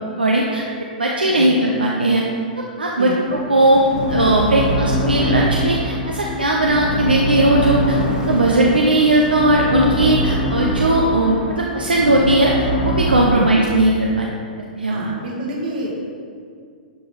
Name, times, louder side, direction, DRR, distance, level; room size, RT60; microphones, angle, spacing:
voice 1, 0.2-0.6 1.0-2.2 2.6-3.8 4.1-8.0 8.3-14.3 14.8-15.0, right 1 dB, 90° right, -1 dB, 0.8 m, -17 dB
sound 1, 3.3-13.3, equal, 75° left, 2.1 m, -23 dB
Bird, 3.6-5.0 7.8-10.3, right 1 dB, 15° right, 1.4 m, -33 dB
voice 2, 14.9-16.0, right 2 dB, 60° right, -2 dB, 2.0 m, -28 dB
11.0 x 5.0 x 4.0 m, 2.2 s
figure-of-eight pair, 110°, 5 cm